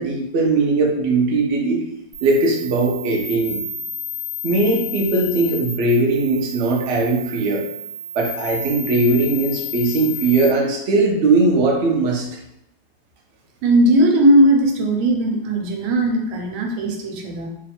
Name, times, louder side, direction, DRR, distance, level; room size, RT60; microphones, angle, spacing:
voice 1, 0.0-1.8 2.2-3.6 4.4-7.6 8.1-12.4, right 3 dB, 65° right, -1 dB, 0.7 m, -19 dB
sound 1, 2.1-10.5, left 4 dB, 20° right, 1.2 m, -31 dB
voice 2, 13.6-17.5, right 1 dB, 90° right, 2 dB, 1.5 m, -17 dB
3.1 x 2.5 x 4.2 m, 0.80 s
omnidirectional pair, 2.1 m